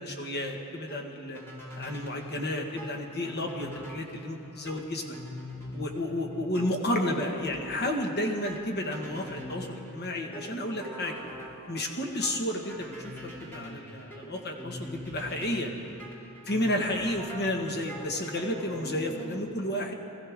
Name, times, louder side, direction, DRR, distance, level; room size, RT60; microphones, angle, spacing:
voice 1, 0.0-1.4 1.8-5.2 5.7-11.2 11.7-15.7 16.4-19.9, left 1 dB, 50° left, 2 dB, 1.6 m, -32 dB
sound 1, 0.8-19.4, left 1 dB, 10° left, 2.5 m, -43 dB
24.5 x 15.0 x 3.7 m, 2.7 s
head